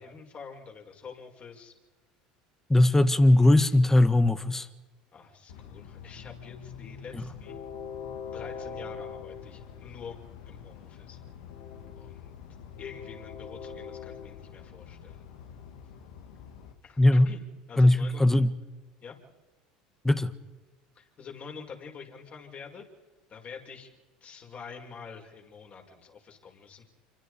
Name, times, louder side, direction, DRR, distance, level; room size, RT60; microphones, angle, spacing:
voice 1, 0.0-1.7 5.1-7.6 8.3-11.2 11.9-12.3 12.8-15.2 16.8-17.0 17.2-17.4 17.7-18.2 19.0-19.2 20.9-22.9 23.3-23.9 24.2-26.8, left 6 dB, 40° left, 6.1 m, -46 dB
voice 2, 2.7-4.7 7.1-7.2 17.0-17.3 17.8-18.5 20.0-20.3, left 1 dB, 10° left, 1.5 m, -20 dB
Train, 5.5-16.7, left 7 dB, 70° left, 2.4 m, -43 dB
28.5 x 24.5 x 5.2 m
hypercardioid pair, 80°, 4 cm